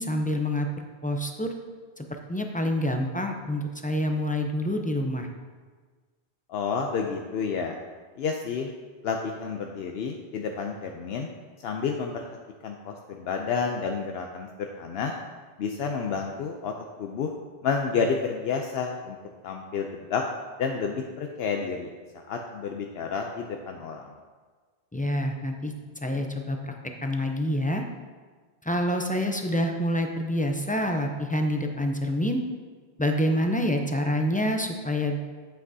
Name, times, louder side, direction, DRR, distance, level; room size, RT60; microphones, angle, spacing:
voice 1, 0.0-1.5 2.0-5.3 24.9-25.7 26.0-26.7 27.0-27.8 28.6-32.4 33.0-35.2, left 1 dB, 15° left, 3 dB, 0.4 m, -27 dB
voice 2, 6.5-7.8 8.2-8.7 9.0-11.3 11.6-12.2 12.6-15.1 15.6-16.7 17.0-17.3 17.6-19.2 19.4-20.2 20.6-24.1, left 5 dB, 75° left, 2 dB, 0.8 m, -30 dB
9.0 x 7.5 x 2.7 m, 1.4 s
omnidirectional pair, 1.0 m